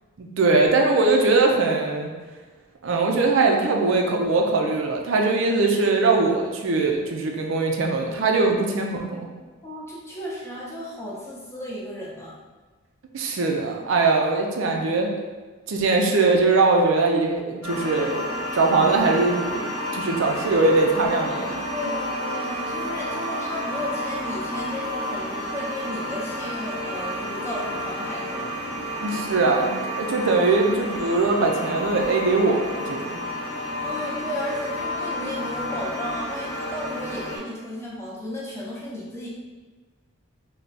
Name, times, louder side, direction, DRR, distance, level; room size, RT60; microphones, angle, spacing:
voice 1, 0.2-2.1 2.8-9.3 13.1-15.1 15.7-18.2 18.5-19.6 19.9-21.6 29.0-33.2, right 3 dB, 65° right, 1 dB, 0.4 m, -21 dB
voice 2, 9.6-12.4 21.7-28.6 33.6-39.3, left 1 dB, 10° left, -5 dB, 0.6 m, -34 dB
sound 1, 17.6-37.4, equal, 90° left, 1.2 m, -31 dB
3.3 x 2.2 x 3.9 m, 1.3 s
head